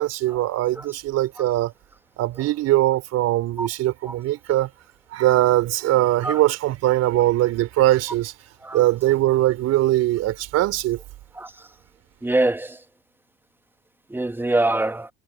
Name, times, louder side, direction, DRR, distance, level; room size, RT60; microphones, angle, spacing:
voice 1, 0.0-1.7 2.2-4.7 5.1-8.3 8.7-11.0, right 15 dB, 55° right, 3.9 m, -21 dB
voice 2, 12.2-12.8 14.1-15.1, right 2 dB, 5° right, 1.5 m, -23 dB
hypercardioid pair, 75°, 30 cm